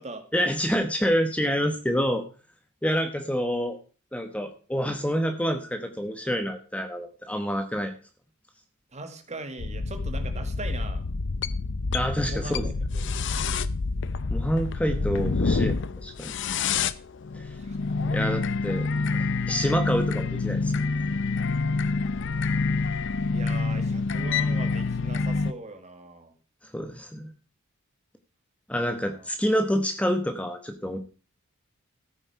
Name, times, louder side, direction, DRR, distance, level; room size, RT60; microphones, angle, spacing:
voice 1, 0.3-2.2 2.8-3.8 4.1-7.9 11.9-12.7 14.3-16.4 17.3-17.5 18.1-18.9 19.1-20.7 26.7-27.3 28.7-31.0, equal, 5° left, 6 dB, 1.0 m, -27 dB
voice 2, 8.9-11.0 12.3-13.1 15.0-15.1 17.6-18.5 23.3-26.3 28.8-29.3, right 2 dB, 35° right, 7 dB, 1.8 m, -40 dB
sound 1, 9.6-25.5, left 4 dB, 60° left, 0.6 m, -27 dB
14.0 x 8.7 x 4.7 m, 0.37 s
head